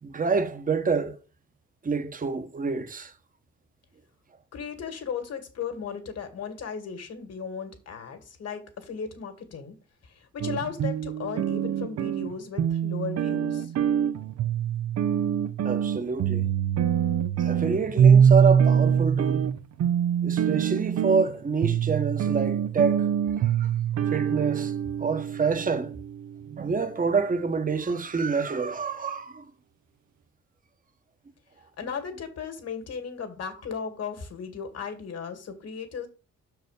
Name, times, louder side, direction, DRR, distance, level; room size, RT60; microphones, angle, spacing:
voice 1, 0.0-1.2 1.8-3.1 15.6-16.5 17.4-19.4 20.2-23.7 24.1-26.0 26.5-29.5, right 5 dB, 25° right, 1.1 m, -27 dB
voice 2, 4.5-9.8 10.0-13.7 31.8-36.1, left 6 dB, 55° left, 2.1 m, -36 dB
sound 1, 10.4-26.6, right 8 dB, 60° right, 0.7 m, -24 dB
6.2 x 4.7 x 6.5 m
cardioid pair, 90°, 30 cm